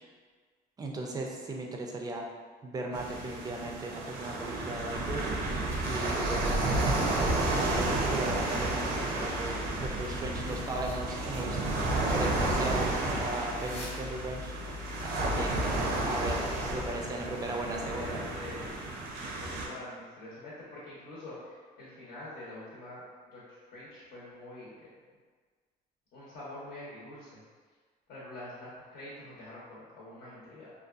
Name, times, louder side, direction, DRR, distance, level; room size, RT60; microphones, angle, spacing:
voice 1, 0.8-2.3 2.6-5.5 5.8-11.6 11.9-15.7 16.0-18.2, right 2 dB, 20° right, 1 dB, 0.4 m, -37 dB
sound 1, 2.9-19.7, right 2 dB, 75° right, 0.5 m, -31 dB
sound 2, 5.7-17.0, left 4 dB, 40° left, 0.7 m, -43 dB
voice 2, 16.7-23.0 23.3-24.9 26.1-27.4 28.1-30.7, left 1 dB, 70° left, -8 dB, 0.8 m, -46 dB
2.6 x 2.3 x 2.3 m, 1.5 s
cardioid pair, 110°, 17 cm